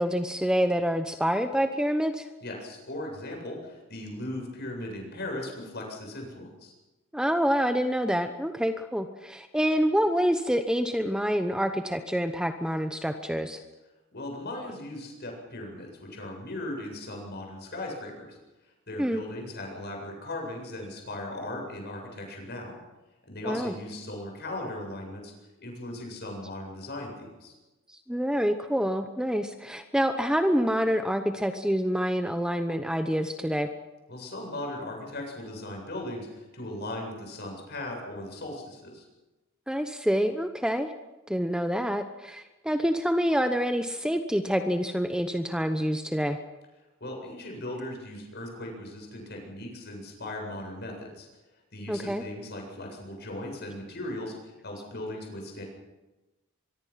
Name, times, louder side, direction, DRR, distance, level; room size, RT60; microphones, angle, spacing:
voice 1, 0.0-2.3 7.1-13.6 19.0-19.2 23.4-23.7 28.1-33.7 39.7-40.9 41.3-46.4 51.9-52.2, equal, 5° right, 7 dB, 0.9 m, -27 dB
voice 2, 2.4-6.7 14.1-18.4 18.9-22.8 23.3-25.3 25.6-27.5 34.1-39.1 47.0-51.3 51.7-55.6, left 1 dB, 50° left, 1 dB, 8.0 m, -38 dB
24.5 x 23.0 x 5.8 m, 1.1 s
head